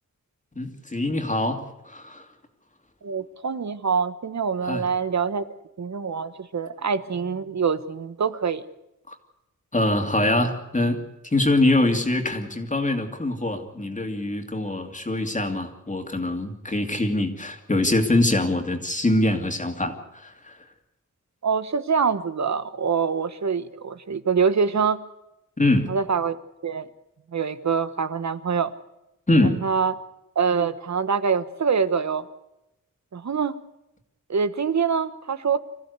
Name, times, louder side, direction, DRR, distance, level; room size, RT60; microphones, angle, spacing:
voice 1, 0.6-2.3 4.6-4.8 9.1-9.2 9.7-20.6 25.6-25.9 29.3-29.6, left 2 dB, 25° left, 5 dB, 2.6 m, -24 dB
voice 2, 3.0-5.4 5.8-8.6 21.4-25.0 25.9-26.4 26.6-26.9 27.3-28.7 29.4-29.9 30.3-32.2 33.1-33.6 34.3-35.6, right 6 dB, 60° right, 12 dB, 1.2 m, -25 dB
26.0 x 15.0 x 8.2 m, 0.89 s
wide cardioid pair, 135°, 32 cm